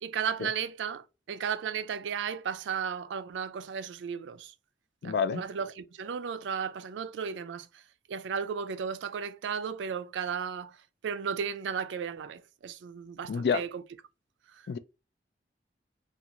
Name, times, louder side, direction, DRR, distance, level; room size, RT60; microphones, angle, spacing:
voice 1, 0.0-4.5 5.0-7.8 8.1-13.8 14.5-14.7, right 7 dB, 90° right, 0.4 m, -35 dB
voice 2, 5.0-5.4 13.3-13.6 14.7-14.8, left 6 dB, 60° left, 0.3 m, -27 dB
2.5 x 2.3 x 2.8 m
head